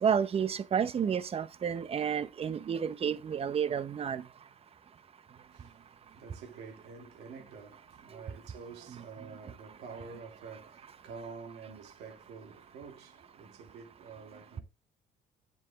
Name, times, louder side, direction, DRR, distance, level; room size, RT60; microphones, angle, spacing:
voice 1, 0.0-4.2, right 7 dB, 35° right, 0.7 m, -30 dB
voice 2, 5.4-14.6, right 5 dB, 80° right, 2.7 m, -48 dB
7.4 x 7.1 x 3.6 m
cardioid pair, 110°, 17 cm